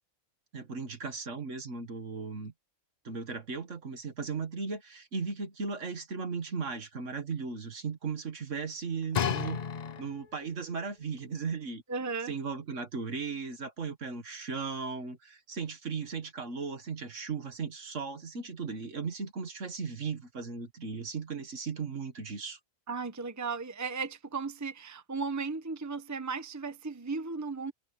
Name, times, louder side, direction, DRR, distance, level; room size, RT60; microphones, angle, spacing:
voice 1, 0.5-2.5 3.0-9.6 10.0-11.8 12.3-22.6, right 5 dB, 60° right, 2.0 m, -37 dB
sound 1, 9.1-10.4 11.2-11.3, left 7 dB, 45° left, 0.5 m, -32 dB
voice 2, 11.9-12.3 22.9-27.7, right 4 dB, 15° right, 1.0 m, -35 dB
omnidirectional pair, 1.4 m